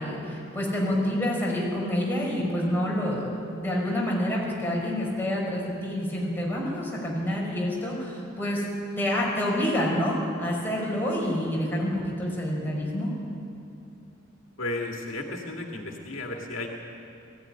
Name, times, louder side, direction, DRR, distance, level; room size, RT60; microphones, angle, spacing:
voice 1, 0.0-8.6 9.0-13.1, left 1 dB, 10° left, -4 dB, 5.5 m, -28 dB
voice 2, 14.6-16.7, left 2 dB, 75° left, 1 dB, 2.1 m, -33 dB
19.0 x 16.0 x 9.8 m, 2.7 s
head